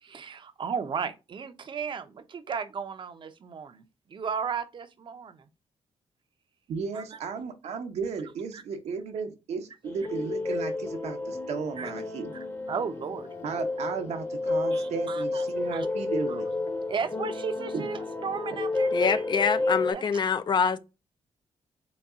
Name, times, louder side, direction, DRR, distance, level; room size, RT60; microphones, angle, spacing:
voice 1, 0.0-3.8 4.1-5.4 6.9-7.0 8.5-8.6 11.8-11.9 12.3-13.6 14.7-15.9 16.3-16.4 16.9-19.3 19.9-20.2, right 6 dB, 50° right, 0.6 m, -35 dB
voice 2, 6.7-12.4 13.4-16.5 17.7-17.9, right 5 dB, 80° right, 0.8 m, -34 dB
sound 1, 9.8-19.9, left 2 dB, 20° left, 0.8 m, -31 dB
voice 3, 18.9-20.8, left 6 dB, 45° left, 0.4 m, -25 dB
4.0 x 2.3 x 3.5 m
cardioid pair, 100°, 11 cm